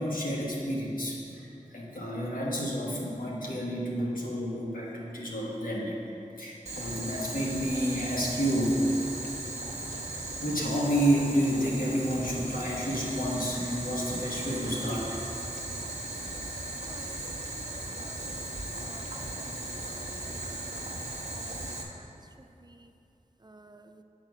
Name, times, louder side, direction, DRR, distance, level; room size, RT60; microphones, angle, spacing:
voice 1, 0.0-1.5 1.7-5.9 6.4-8.8 10.4-15.2, equal, 85° left, -4 dB, 1.4 m, -30 dB
Boiling, 6.7-21.8, right 2 dB, 55° right, 1.3 m, -37 dB
voice 2, 17.4-18.2 18.9-19.4 20.7-20.8 21.3-21.5 23.5-23.8, right 2 dB, 30° right, 7 dB, 0.5 m, -51 dB
8.6 x 4.3 x 6.1 m, 2.8 s
wide cardioid pair, 40°, 14 cm